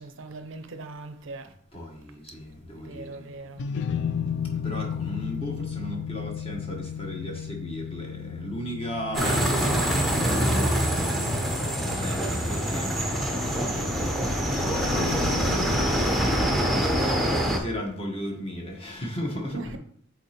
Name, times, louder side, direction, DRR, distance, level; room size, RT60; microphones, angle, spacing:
voice 1, 0.0-1.5 2.7-3.6 9.2-9.4 10.5-11.2 16.1-16.3 19.5-19.8, right 3 dB, 65° right, 0.5 m, -40 dB
voice 2, 1.7-3.2 4.6-9.4 10.1-10.7 11.8-15.9 16.3-16.6 17.5-19.6, equal, 30° left, 1.2 m, -36 dB
sound 1, 3.3-15.8, left 7 dB, 60° left, 0.3 m, -35 dB
sound 2, 9.1-17.6, equal, ahead, 0.7 m, -25 dB
8.1 x 4.0 x 2.9 m
head